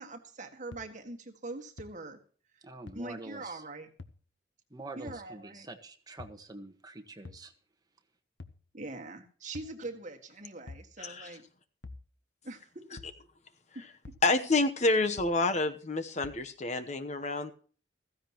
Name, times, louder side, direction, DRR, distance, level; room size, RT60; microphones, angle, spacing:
voice 1, 0.0-2.2 2.9-3.9 5.0-5.7 8.7-11.4 12.4-13.0 13.8-14.1, right 2 dB, 45° right, 4 dB, 1.9 m, -43 dB
sound 1, 0.7-0.8 1.8-1.9 2.9-3.0 4.0-4.2 5.1-5.2 6.2-6.4 7.2-7.5 8.4-8.6 9.5-9.8 10.7-10.9 11.8-12.1 13.0-13.2 14.0-14.3 15.2-15.4 16.2-16.4, left 3 dB, 70° left, 1.0 m, -47 dB
voice 2, 2.6-3.7 4.7-7.5, right 2 dB, 20° right, 6 dB, 1.5 m, -46 dB
voice 3, 11.0-11.3 14.2-17.5, left 2 dB, 40° left, 9 dB, 1.0 m, -28 dB
15.5 x 15.0 x 3.0 m, 0.42 s
head